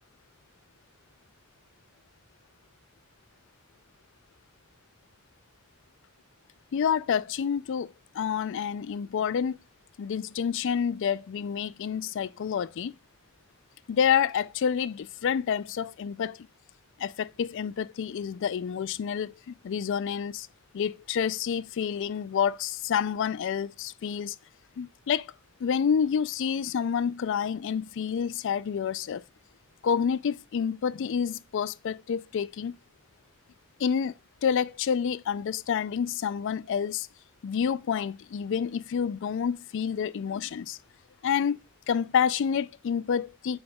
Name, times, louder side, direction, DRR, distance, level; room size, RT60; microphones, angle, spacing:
voice 1, 6.7-9.6 10.0-12.9 13.9-16.5 17.0-20.5 20.7-24.4 24.8-25.3 25.6-29.2 29.8-32.8 33.8-34.1 34.4-37.1 37.4-40.8 41.2-43.6, left 7 dB, 55° left, 0.3 m, -28 dB
7.8 x 5.3 x 2.3 m
head